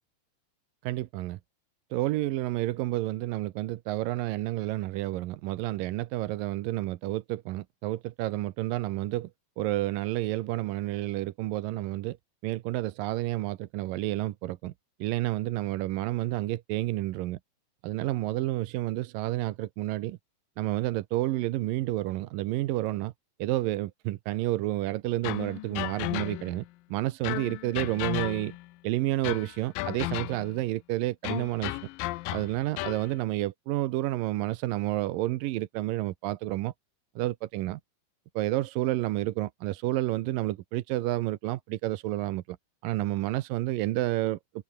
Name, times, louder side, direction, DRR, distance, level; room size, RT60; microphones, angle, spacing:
voice 1, 0.8-1.4 1.9-9.3 9.6-12.2 12.4-14.7 15.0-17.4 17.8-20.2 20.6-23.1 23.4-26.6 26.9-28.6 28.8-31.8 32.3-36.7 37.2-37.8 38.4-42.6 42.8-44.4, right 16 dB, 80° right, 2.5 m, -30 dB
sound 1, 25.2-26.7 27.2-28.7 29.2-30.6 31.2-33.1, left 19 dB, 85° left, 2.4 m, -34 dB
omnidirectional pair, 4.0 m